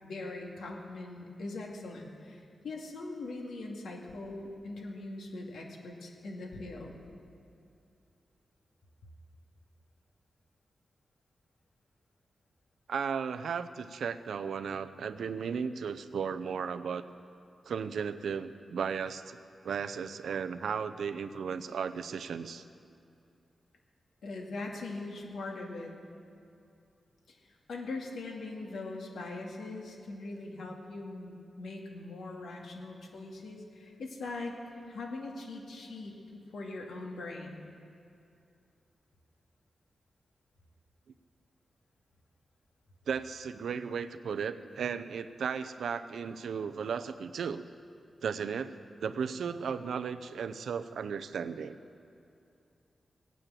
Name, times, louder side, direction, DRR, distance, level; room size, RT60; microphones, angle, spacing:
voice 1, 0.0-7.0 24.2-25.9 27.3-37.6, left 2 dB, 90° left, 0 dB, 2.3 m, -41 dB
voice 2, 12.9-17.0 17.7-19.4 19.6-22.6 43.1-47.6 48.2-48.7 49.0-51.8, right 6 dB, 85° right, 11 dB, 0.6 m, -35 dB
17.5 x 9.2 x 7.7 m, 2.5 s
cardioid pair, 65°, 0 cm